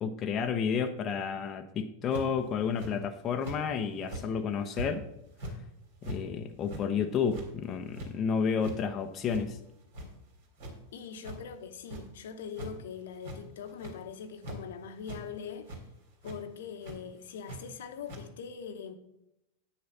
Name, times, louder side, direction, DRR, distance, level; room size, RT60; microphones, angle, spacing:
voice 1, 0.0-5.0 6.0-9.6, left 6 dB, 30° left, 0.7 m, -31 dB
sound 1, 2.1-2.4 2.8-2.9 3.4-3.6 4.0-4.3 4.7-4.9 5.3-5.5 6.0-6.2 6.6-6.8 7.2-7.5 7.9-8.1 8.5-8.8 9.3-9.4 9.8-10.3 10.6-10.7 11.2-11.4 11.9-12.0 12.5-12.7 13.1-13.4 13.7-14.0 14.4-14.6 15.0-15.2 15.6-15.8 16.2-16.4 16.8-16.9 17.4-17.6 18.1-18.2, right 1 dB, 55° right, 3.3 m, -41 dB
voice 2, 10.9-15.7 16.2-18.9, left 7 dB, 60° left, 1.0 m, -42 dB
10.0 x 6.3 x 5.8 m
figure-of-eight pair, 90°, 0 cm